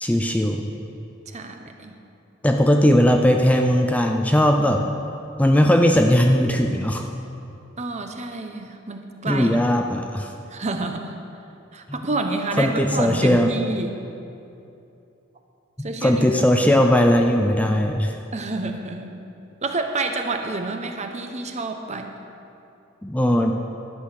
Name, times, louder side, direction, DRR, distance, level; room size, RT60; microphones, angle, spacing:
voice 1, 0.0-0.7 2.4-4.9 5.4-7.0 9.3-10.3 12.6-13.6 15.8-18.1 23.0-23.6, equal, 5° left, 3 dB, 0.5 m, -18 dB
voice 2, 1.3-2.0 7.8-9.6 10.5-11.2 11.7-14.0 15.8-16.2 18.3-19.2 19.6-22.1, right 3 dB, 35° right, 5 dB, 0.9 m, -29 dB
11.5 x 8.0 x 6.6 m, 2.7 s
head